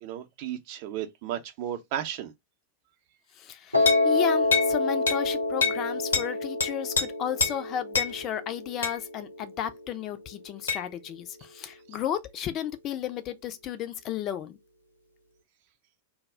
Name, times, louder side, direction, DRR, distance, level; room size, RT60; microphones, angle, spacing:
voice 1, 0.0-2.3, right 10 dB, 45° right, 0.5 m, -34 dB
voice 2, 3.3-14.6, left 10 dB, 35° left, 0.4 m, -33 dB
Piano, 3.7-9.9, left 2 dB, 90° right, 0.6 m, -28 dB
sound 1, 3.9-4.1 4.5-4.7 5.1-5.2 5.6-5.8 6.1-6.3 6.6-7.1 7.4-7.6 7.9-8.1 8.8-9.0 10.7-10.8, left 5 dB, 70° left, 0.6 m, -25 dB
2.3 x 2.0 x 3.4 m
figure-of-eight pair, 90°, 0 cm